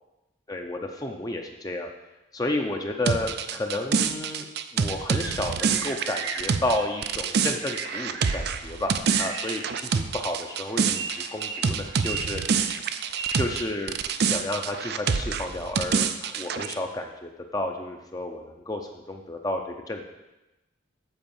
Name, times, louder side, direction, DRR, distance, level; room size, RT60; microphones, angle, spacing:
voice 1, 0.5-1.9 2.3-4.5 4.7-13.0 13.3-19.6 19.9-20.1, left 1 dB, 20° left, 3 dB, 0.5 m, -32 dB
sound 1, 3.1-13.6 13.9-16.7, right 6 dB, 55° right, 0.4 m, -27 dB
sound 2, 4.9-13.6, right 4 dB, 70° right, 1.4 m, -38 dB
8.0 x 4.7 x 7.1 m, 0.99 s
head